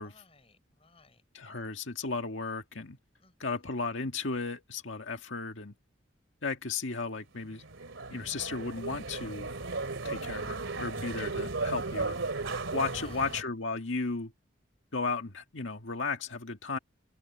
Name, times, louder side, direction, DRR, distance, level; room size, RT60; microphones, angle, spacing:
voice 1, 0.0-1.2 3.2-3.7 12.8-13.3, left 3 dB, 30° left, 6.8 m, -57 dB
voice 2, 1.3-3.0 3.4-5.7 6.4-7.6 8.1-9.6 10.0-12.2 12.7-14.3 14.9-16.8, left 4 dB, 75° left, 1.8 m, -35 dB
sound 1, 7.5-13.4, right 3 dB, 80° right, 2.7 m, -35 dB
head